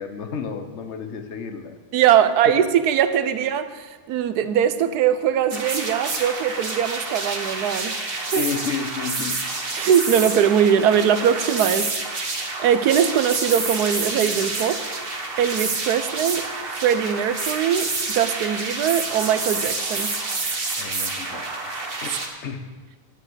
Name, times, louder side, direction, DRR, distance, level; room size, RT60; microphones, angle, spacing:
voice 1, 0.0-1.8 2.2-2.3 8.4-9.4 20.7-21.6 22.0-22.7, left 6 dB, 50° left, 7 dB, 1.2 m, -31 dB
voice 2, 1.9-8.4 9.7-12.0 12.3-14.8 15.4-20.1, right 9 dB, 85° right, 12 dB, 1.3 m, -21 dB
sound 1, 5.5-22.3, right 3 dB, 40° right, 1.5 m, -28 dB
10.0 x 7.4 x 8.0 m, 1.5 s
omnidirectional pair, 1.6 m